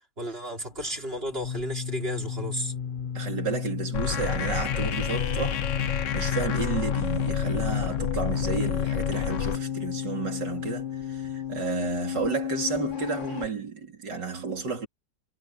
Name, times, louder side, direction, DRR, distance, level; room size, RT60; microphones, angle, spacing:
voice 1, 0.2-2.7, equal, 30° right, 4.6 m, -33 dB
sound 1, 0.6-13.5, left 8 dB, 30° left, 1.3 m, -33 dB
voice 2, 3.1-5.6 6.1-14.9, right 5 dB, 65° right, 4.2 m, -32 dB
sound 2, 3.9-9.6, left 8 dB, 50° left, 1.0 m, -29 dB
omnidirectional pair, 2.0 m